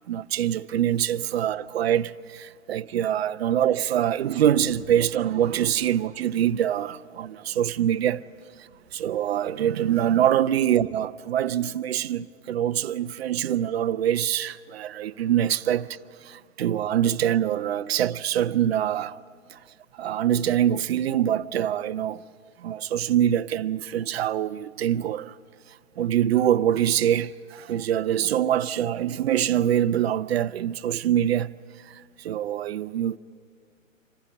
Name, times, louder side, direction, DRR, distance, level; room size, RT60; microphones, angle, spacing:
voice 1, 0.1-8.2 8.9-15.9 16.3-19.1 20.0-22.2 22.6-25.3 26.0-31.5 32.2-33.2, right 10 dB, 50° right, 0.7 m, -24 dB
26.5 x 15.0 x 9.3 m
figure-of-eight pair, 125°, 39 cm